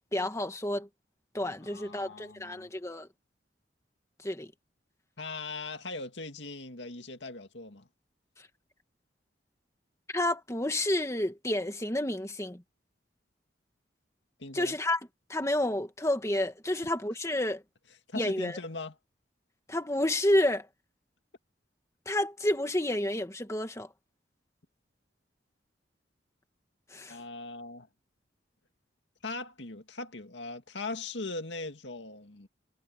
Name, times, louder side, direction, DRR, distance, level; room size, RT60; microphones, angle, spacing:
voice 1, 0.1-0.9 1.3-3.1 4.2-4.5 10.1-12.6 14.5-15.0 15.3-17.6 18.1-18.6 19.7-20.7 22.1-23.9 26.9-27.2, left 1 dB, 15° left, 1.8 m, -30 dB
voice 2, 1.6-2.7 5.2-7.9 14.4-14.8 18.1-19.0 27.1-27.9 29.2-32.5, left 3 dB, 80° left, 2.1 m, -40 dB
head